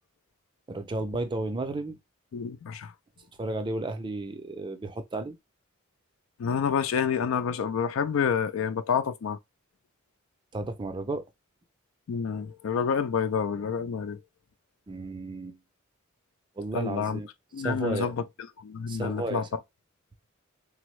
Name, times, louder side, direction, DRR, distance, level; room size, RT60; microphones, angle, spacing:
voice 1, 0.7-2.0 3.4-5.4 10.5-11.3 14.9-15.6 16.6-17.3 17.6-18.1 18.9-19.5, right 2 dB, 20° right, 0.4 m, -33 dB
voice 2, 2.3-2.9 6.4-9.4 12.1-14.2 16.7-17.2 17.5-18.2 18.6-19.5, left 6 dB, 70° left, 0.4 m, -28 dB
3.5 x 2.0 x 3.0 m
head